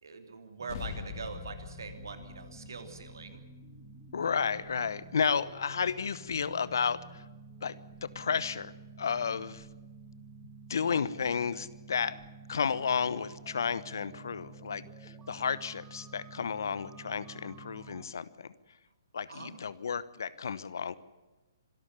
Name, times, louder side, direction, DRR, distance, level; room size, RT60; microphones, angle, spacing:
voice 1, 0.0-3.4 19.3-19.6, right 4 dB, 70° right, 7 dB, 3.1 m, -43 dB
sound 1, 0.6-18.0, right 4 dB, 15° right, 2.3 m, -51 dB
sound 2, 0.7-5.5, left 8 dB, 50° left, 2.7 m, -45 dB
voice 2, 4.1-7.2 7.6-7.8 8.0-8.7 9.0-9.7 10.7-12.2 12.5-18.5 19.1-21.0, left 6 dB, 65° left, 17 dB, 1.0 m, -32 dB
25.5 x 13.0 x 9.7 m, 1.2 s
figure-of-eight pair, 130°, 2 cm